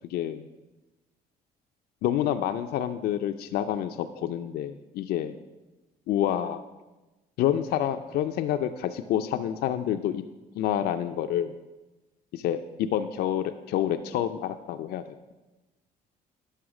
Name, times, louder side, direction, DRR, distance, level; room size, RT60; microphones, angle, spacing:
voice 1, 0.1-0.4 2.0-5.3 6.1-6.6 7.4-10.2 10.6-11.5 12.3-15.0, left 10 dB, 80° left, 8 dB, 0.5 m, -28 dB
11.5 x 5.6 x 6.0 m, 1.1 s
cardioid pair, 120°, 16 cm